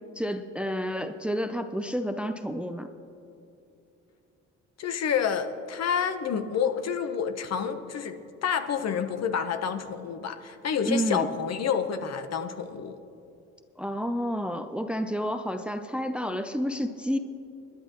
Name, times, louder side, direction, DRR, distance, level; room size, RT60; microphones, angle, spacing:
voice 1, 0.2-2.9 10.9-11.3 13.8-17.2, equal, 5° right, 8 dB, 0.5 m, -30 dB
voice 2, 4.8-13.0, left 7 dB, 55° left, 8 dB, 0.9 m, -29 dB
27.5 x 10.5 x 3.0 m, 2.7 s
cardioid pair, 90°, 30 cm